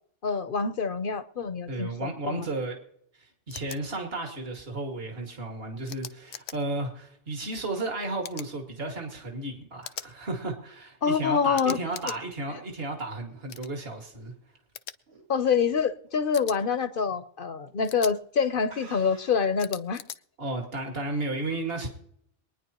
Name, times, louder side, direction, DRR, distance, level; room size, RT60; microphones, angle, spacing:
voice 1, 0.2-2.5 11.0-11.8 15.3-20.0, left 6 dB, 50° left, 0.9 m, -26 dB
voice 2, 1.7-2.8 3.1-14.3 20.4-21.9, right 2 dB, 55° right, 2.4 m, -33 dB
sound 1, 3.5-3.8 5.9-6.6 8.2-8.5 9.8-10.1 11.5-12.2 13.5-13.7 14.7-14.9 16.3-16.6 17.8-18.1 19.6-20.2, left 10 dB, 85° left, 1.0 m, -40 dB
sound 2, 12.7-15.7 16.1-16.4 16.8-16.9 17.7-17.9 18.2-18.3 18.7-19.6, right 3 dB, 75° right, 2.8 m, -52 dB
23.5 x 10.0 x 3.0 m
omnidirectional pair, 1.2 m